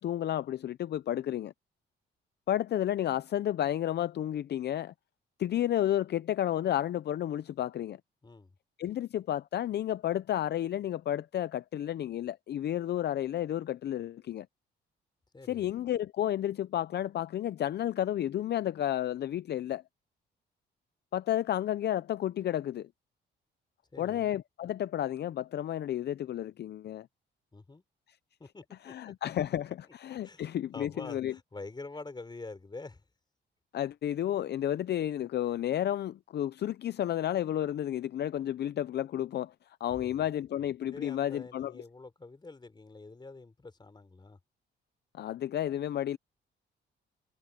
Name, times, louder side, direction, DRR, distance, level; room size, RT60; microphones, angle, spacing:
voice 1, 0.0-1.5 2.5-4.9 5.4-8.0 8.8-14.5 15.5-19.8 21.1-22.9 24.0-27.1 28.8-31.3 33.7-41.7 45.1-46.2, left 11 dB, 55° left, 0.6 m, -31 dB
voice 2, 8.2-8.6 15.3-15.7 23.9-24.3 27.5-27.8 28.4-29.3 30.2-33.0 40.0-40.3 40.9-44.4, left 3 dB, 20° left, 4.1 m, -46 dB
cardioid pair, 90°, 20 cm